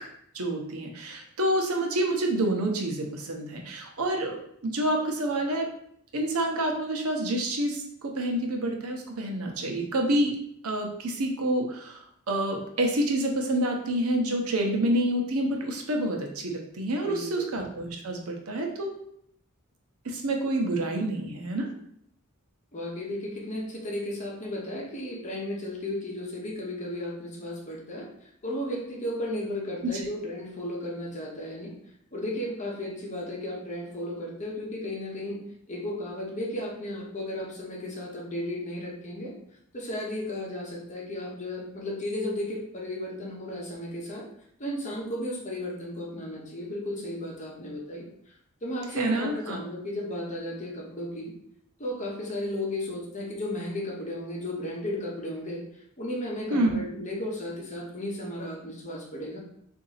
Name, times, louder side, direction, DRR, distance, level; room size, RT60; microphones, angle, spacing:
voice 1, 0.3-5.7 6.1-10.3 10.6-18.9 20.0-21.7 49.0-49.6 56.5-56.8, right 1 dB, 85° right, 2 dB, 0.8 m, -28 dB
voice 2, 17.0-17.5 22.7-31.7 32.1-35.4 35.7-39.3 39.7-44.2 44.6-48.3 48.6-51.3 51.8-55.6 56.0-59.4, left 1 dB, 35° left, -2 dB, 1.0 m, -34 dB
3.8 x 2.7 x 4.0 m, 0.69 s
head